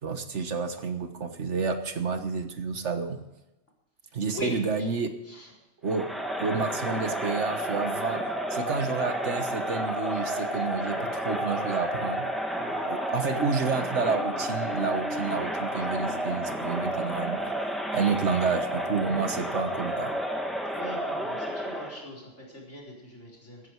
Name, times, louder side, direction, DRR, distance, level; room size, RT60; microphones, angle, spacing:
voice 1, 0.0-3.2 4.1-5.1 5.8-6.1 6.4-12.2 12.9-17.4 17.9-20.1, right 5 dB, 70° right, 8 dB, 1.7 m, -30 dB
voice 2, 4.3-4.9 5.3-5.5 12.5-12.9 20.7-23.6, left 1 dB, 70° left, -2 dB, 4.7 m, -40 dB
Crowd, 5.9-22.0, equal, ahead, 1.8 m, -31 dB
15.0 x 13.5 x 4.8 m, 0.99 s
omnidirectional pair, 1.3 m